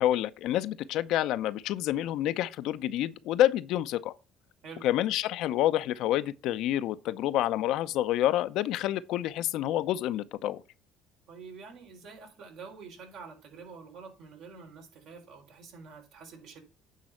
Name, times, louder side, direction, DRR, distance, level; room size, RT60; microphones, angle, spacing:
voice 1, 0.0-4.1 4.8-10.6, left 13 dB, 75° left, 0.7 m, -28 dB
voice 2, 11.3-16.6, right 5 dB, 70° right, 4.1 m, -47 dB
9.2 x 4.1 x 7.2 m
supercardioid pair, 70°, 0 cm